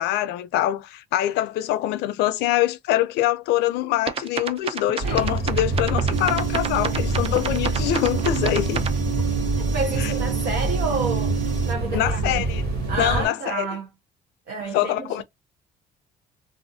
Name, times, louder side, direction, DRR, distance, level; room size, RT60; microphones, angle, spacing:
voice 1, 0.0-8.8 10.0-10.1 11.9-12.6 13.0-13.7 14.7-15.2, left 14 dB, 85° left, 0.5 m, -24 dB
sound 1, 4.1-9.0, right 6 dB, 35° right, 0.4 m, -29 dB
sound 2, 5.0-13.3, right 2 dB, 70° right, 1.6 m, -26 dB
sound 3, 6.1-11.7, right 9 dB, 50° right, 1.2 m, -32 dB
voice 2, 9.6-12.4 12.9-13.9 14.5-15.2, right 4 dB, 85° right, 0.9 m, -30 dB
2.6 x 2.4 x 2.6 m
cardioid pair, 110°, 17 cm